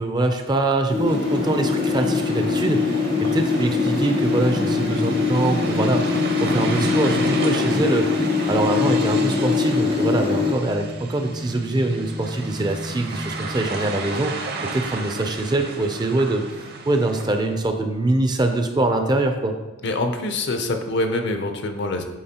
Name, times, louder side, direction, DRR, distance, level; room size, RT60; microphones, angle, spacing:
voice 1, 0.0-8.1 8.5-16.4 16.9-19.5, right 2 dB, 20° right, 5 dB, 0.4 m, -23 dB
sound 1, 0.9-10.5, left 4 dB, 90° left, 2.0 m, -22 dB
sound 2, 1.1-17.5, right 2 dB, 50° right, 0.8 m, -32 dB
voice 2, 19.8-22.1, left 2 dB, 60° left, 6 dB, 0.6 m, -25 dB
8.6 x 4.1 x 2.9 m, 1.1 s
head